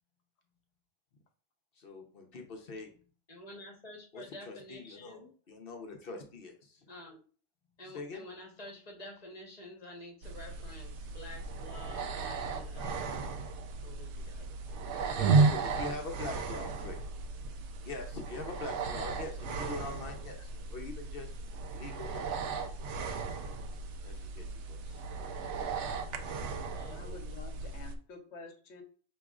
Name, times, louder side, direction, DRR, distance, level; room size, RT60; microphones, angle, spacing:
voice 1, 1.7-2.9 4.1-5.2 5.5-6.9 7.8-8.2 13.1-13.2 15.2-17.0 17.8-21.4 21.7-22.7 24.0-25.0 26.0-26.2, left 3 dB, 60° left, 3 dB, 0.9 m, -43 dB
voice 2, 3.3-5.3 6.9-7.2 7.8-13.5 13.8-15.7 26.4-27.2, left 1 dB, 35° left, -1 dB, 1.2 m, -50 dB
sound 1, 10.2-28.0, right 4 dB, 90° right, 0.9 m, -34 dB
voice 3, 26.9-28.8, left 3 dB, 80° left, 5 dB, 1.1 m, -49 dB
5.9 x 3.0 x 2.4 m, 0.41 s
omnidirectional pair, 1.1 m